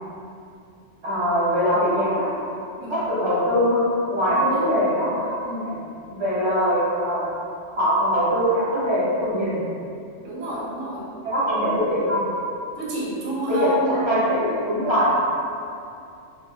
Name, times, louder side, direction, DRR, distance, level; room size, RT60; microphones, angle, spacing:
voice 1, 1.0-2.3 2.9-5.7 6.1-7.3 7.8-9.6 11.2-12.2 13.5-15.2, equal, 30° right, -10 dB, 0.7 m, -22 dB
voice 2, 4.3-4.7 10.2-11.1 12.8-14.1, right 1 dB, 90° right, -6 dB, 0.9 m, -29 dB
2.2 x 2.0 x 2.7 m, 2.5 s
omnidirectional pair, 1.3 m